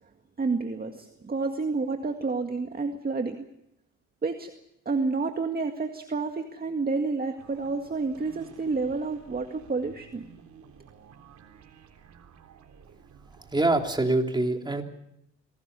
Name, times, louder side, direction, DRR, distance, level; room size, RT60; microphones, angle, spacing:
voice 1, 0.4-3.4 4.2-4.5 4.9-10.2, right 4 dB, 30° right, 4 dB, 1.9 m, -29 dB
sound 1, 7.4-14.0, right 7 dB, 70° right, 3.5 m, -52 dB
voice 2, 13.4-14.8, right 2 dB, 15° right, 3 dB, 3.4 m, -25 dB
26.0 x 18.0 x 6.9 m, 0.79 s
cardioid pair, 90°, 30 cm